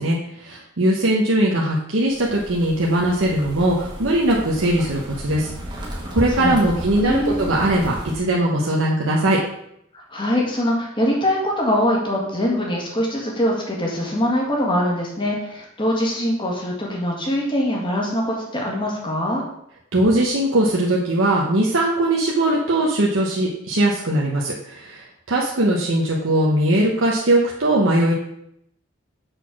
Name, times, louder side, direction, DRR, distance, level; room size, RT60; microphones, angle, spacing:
voice 1, 0.0-5.5 6.1-9.4 19.9-28.1, right 1 dB, 75° right, -3 dB, 1.0 m, -20 dB
sound 1, 2.1-8.2, right 1 dB, 20° right, 1.4 m, -34 dB
voice 2, 7.0-7.4 10.1-19.4, equal, 25° left, -2 dB, 1.8 m, -23 dB
6.5 x 4.2 x 6.1 m, 0.75 s
head